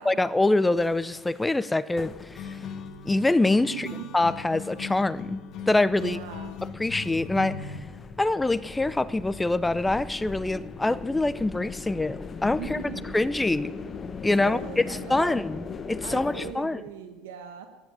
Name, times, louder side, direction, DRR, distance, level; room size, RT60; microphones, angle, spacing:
voice 1, 0.0-2.6 3.0-3.9 4.1-5.4 5.7-6.2 6.8-7.8 8.2-12.8 13.1-13.7 14.2-14.8 15.1-16.8, left 2 dB, 10° left, 16 dB, 0.6 m, -25 dB
sound 1, 0.8-3.1 3.6-3.7 4.2-16.5, left 5 dB, 25° left, 0.9 m, -40 dB
sound 2, 2.3-7.8, left 6 dB, 45° left, 2.0 m, -38 dB
voice 2, 3.7-4.1 6.0-6.6 12.6-13.2 14.4-15.4 16.0-17.7, right 7 dB, 85° right, 7 dB, 1.4 m, -39 dB
15.0 x 10.5 x 8.7 m, 1.2 s
supercardioid pair, 115°, 0 cm